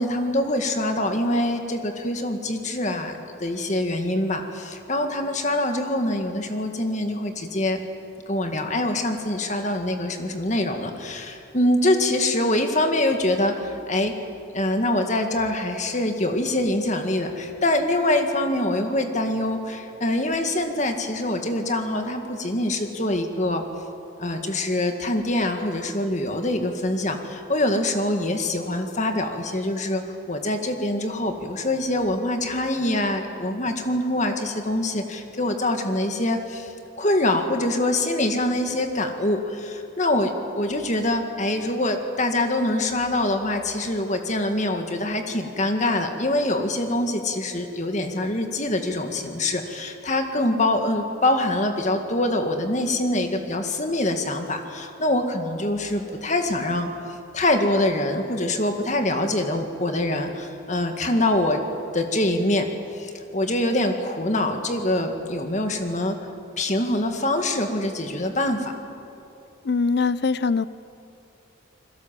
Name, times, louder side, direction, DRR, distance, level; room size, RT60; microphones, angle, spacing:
voice 1, 0.0-7.8 8.3-14.1 14.5-23.6 24.2-61.6 61.9-66.2 66.6-68.7, left 1 dB, 35° left, 5 dB, 1.9 m, -24 dB
voice 2, 69.6-70.7, left 4 dB, 55° left, 17 dB, 0.5 m, -22 dB
29.0 x 21.5 x 7.5 m, 2.8 s
head